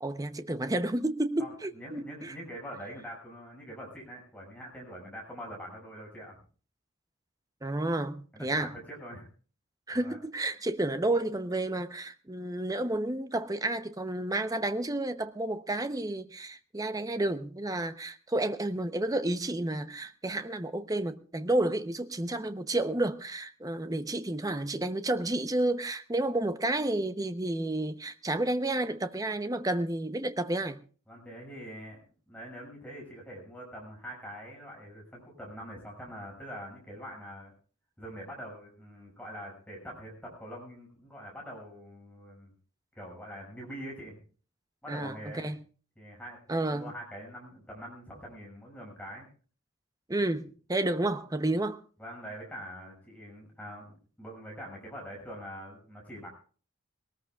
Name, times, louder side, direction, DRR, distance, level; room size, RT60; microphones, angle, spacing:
voice 1, 0.0-2.4 7.6-8.7 9.9-30.8 44.9-45.6 46.5-46.9 50.1-51.8, right 1 dB, 15° right, 0.7 m, -31 dB
voice 2, 1.4-6.4 8.3-9.3 9.9-10.2 31.1-32.0 32.3-37.5 38.0-42.5 42.9-44.2 44.8-45.6 46.0-49.3 52.0-56.3, equal, 5° left, 6.4 m, -44 dB
21.0 x 19.0 x 2.4 m
head